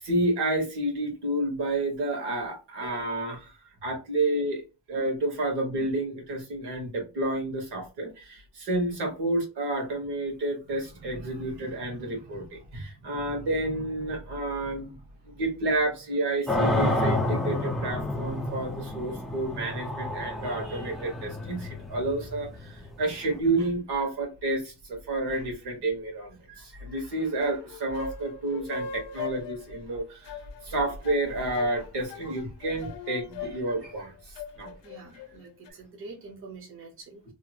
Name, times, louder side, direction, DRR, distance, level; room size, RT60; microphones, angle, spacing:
voice 1, 0.0-3.5 3.8-4.6 4.9-15.0 15.2-30.3 30.6-34.8, right 2 dB, 65° right, 1.4 m, -30 dB
sound 1, 16.5-23.4, left 1 dB, ahead, 0.5 m, -29 dB
sound 2, 27.2-35.7, left 5 dB, 80° left, 0.6 m, -40 dB
voice 2, 34.8-37.3, right 3 dB, 30° right, 0.7 m, -46 dB
2.8 x 2.4 x 2.8 m
cardioid pair, 175°, 43 cm